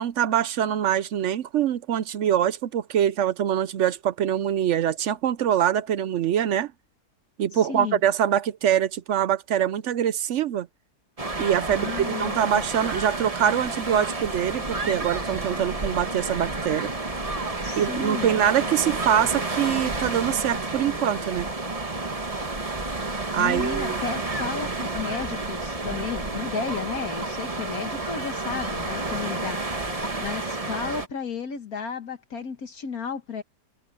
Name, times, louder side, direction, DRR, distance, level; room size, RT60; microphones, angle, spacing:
voice 1, 0.0-6.7 7.4-10.7 11.4-16.9 17.8-21.5 23.3-24.0, right 10 dB, 65° right, 0.7 m, -24 dB
voice 2, 7.5-8.0 11.7-12.6 17.6-18.4 23.4-29.6 30.2-33.4, left 6 dB, 65° left, 1.7 m, -33 dB
sound 1, 11.2-31.1, right 2 dB, 20° right, 1.7 m, -30 dB
omnidirectional pair, 1.7 m